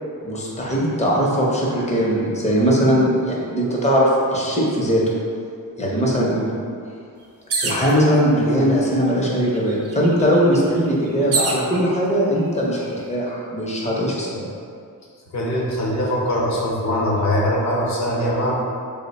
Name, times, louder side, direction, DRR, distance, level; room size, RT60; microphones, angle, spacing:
voice 1, 0.2-5.0 5.8-6.5 7.6-14.5, equal, 20° left, -4 dB, 0.6 m, -20 dB
sound 1, 7.5-7.9 8.9-9.0 9.3-11.7 12.4-12.9, right 4 dB, 45° right, 0.4 m, -26 dB
voice 2, 15.3-18.5, left 1 dB, 55° left, -4 dB, 0.8 m, -22 dB
3.0 x 2.1 x 4.1 m, 2.3 s
wide cardioid pair, 110°, 34 cm